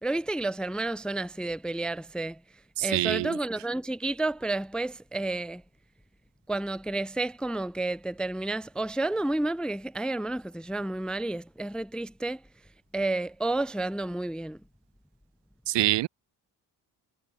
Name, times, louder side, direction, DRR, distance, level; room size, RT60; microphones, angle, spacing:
voice 1, 0.0-2.4 2.8-5.6 6.5-12.4 12.9-14.6, right 2 dB, ahead, 0.3 m, -31 dB
voice 2, 2.8-3.3 15.7-16.1, right 17 dB, 75° right, 0.5 m, -25 dB
cardioid pair, 110°, 42 cm